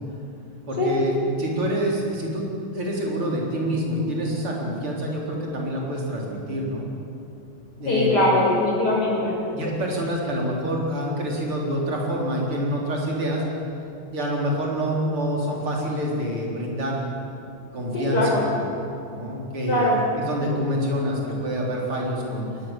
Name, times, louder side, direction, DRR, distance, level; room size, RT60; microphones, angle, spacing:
voice 1, 0.7-6.8 7.8-8.1 9.5-13.4 14.1-17.0 17.7-18.4 19.0-22.5, equal, 80° right, -2 dB, 4.9 m, -27 dB
voice 2, 7.8-9.4 17.9-18.4 19.7-20.0, left 1 dB, 50° left, -2 dB, 5.9 m, -21 dB
22.0 x 19.0 x 7.4 m, 2.7 s
omnidirectional pair, 2.4 m